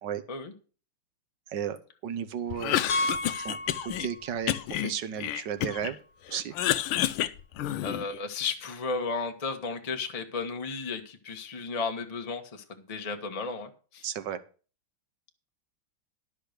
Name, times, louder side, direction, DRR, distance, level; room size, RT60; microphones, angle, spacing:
voice 1, 1.5-2.9 3.4-3.6 3.8-6.0 6.3-6.5 14.0-14.4, right 8 dB, 65° right, 10 dB, 1.4 m, -34 dB
Cough, 2.5-4.1 4.5-6.0 6.3-8.2, left 12 dB, 85° left, 1.5 m, -29 dB
Piano, 2.9-4.5 4.8-4.9 5.5-5.6 5.8-5.9 8.0-8.1, left 1 dB, 65° left, 0.5 m, -33 dB
voice 2, 7.8-14.0, left 4 dB, 25° left, 4 dB, 1.0 m, -34 dB
12.0 x 5.8 x 6.5 m, 0.37 s
omnidirectional pair, 2.3 m